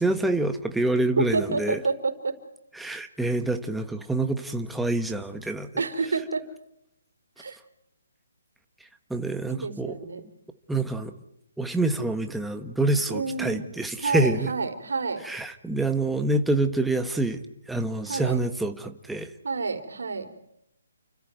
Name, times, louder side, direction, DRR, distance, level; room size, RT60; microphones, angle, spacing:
voice 1, 0.0-1.8 2.8-5.7 9.1-10.0 10.7-11.1 11.6-14.5 15.2-19.3, right 2 dB, ahead, 6 dB, 1.3 m, -26 dB
voice 2, 1.2-2.4 5.8-6.5 7.4-7.6 9.5-10.3 13.1-13.7 14.0-15.2 18.1-18.4 19.4-20.3, right 4 dB, 75° right, 5 dB, 4.1 m, -29 dB
30.0 x 14.5 x 9.3 m, 0.81 s
hypercardioid pair, 160°, 0 cm